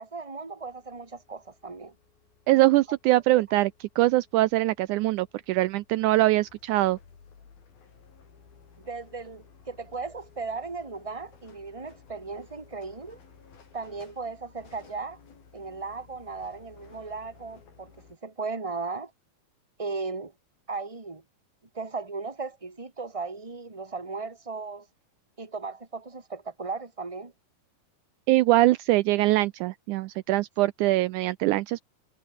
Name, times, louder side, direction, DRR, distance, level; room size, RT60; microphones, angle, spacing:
voice 1, 0.0-1.9 3.3-3.4 8.8-13.2 13.7-15.2 15.5-19.1 19.8-20.3 20.7-21.2 21.7-24.9 25.4-27.3, right 4 dB, 10° right, 2.2 m, -36 dB
sound 1, 0.6-18.2, left 6 dB, 80° left, 6.7 m, -56 dB
voice 2, 2.5-7.0 28.3-31.8, right 17 dB, 85° right, 1.7 m, -23 dB
omnidirectional pair, 4.2 m